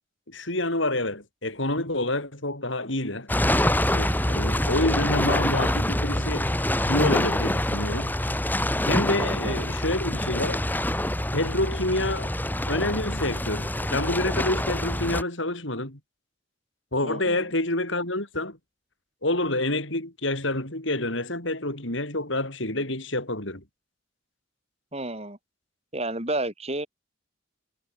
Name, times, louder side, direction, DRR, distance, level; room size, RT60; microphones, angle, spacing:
voice 1, 0.3-3.3 3.9-6.5 6.9-8.1 8.8-10.6 11.3-12.3 12.7-16.0 16.9-18.6 19.2-23.6, left 1 dB, 70° left, 6.8 m, -28 dB
sound 1, 3.3-15.2, left 1 dB, 10° left, 7.5 m, -26 dB
voice 2, 9.1-9.7 17.0-17.5 24.9-25.4 25.9-26.9, right 2 dB, 30° right, 6.2 m, -32 dB
head